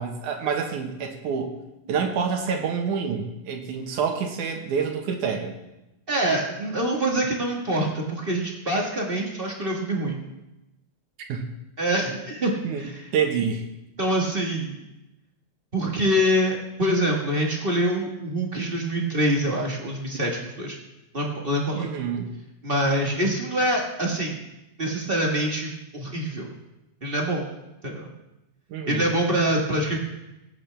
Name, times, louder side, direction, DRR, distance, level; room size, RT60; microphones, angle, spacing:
voice 1, 0.0-1.5 1.9-5.5 11.3-11.4 12.6-12.9 13.1-13.6 21.7-22.3 28.7-29.1, right 6 dB, 80° right, 3 dB, 2.8 m, -27 dB
voice 2, 6.1-10.2 11.8-12.5 12.8-13.1 14.0-14.8 15.7-20.8 21.1-21.9 22.6-24.4 24.8-26.5 27.0-27.4 27.8-28.1 28.9-30.0, right 1 dB, 35° right, -1 dB, 0.9 m, -25 dB
21.0 x 8.6 x 3.4 m, 0.95 s
omnidirectional pair, 3.5 m